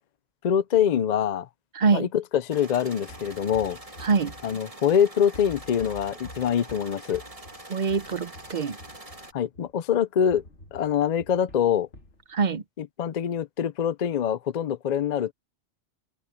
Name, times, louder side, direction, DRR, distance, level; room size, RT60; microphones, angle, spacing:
voice 1, 0.4-1.5 1.9-3.8 4.4-7.2 9.3-10.4 10.7-11.9 12.8-15.3, left 8 dB, 50° left, 0.5 m, -24 dB
voice 2, 1.7-2.1 4.0-4.3 7.7-8.8 12.3-12.6, right 5 dB, 45° right, 0.8 m, -24 dB
sound 1, 2.5-9.3, right 1 dB, 30° right, 2.1 m, -44 dB
sound 2, 3.1-5.0 5.3-9.8 10.3-12.2, left 1 dB, 75° left, 3.3 m, -48 dB
open air
omnidirectional pair, 1.2 m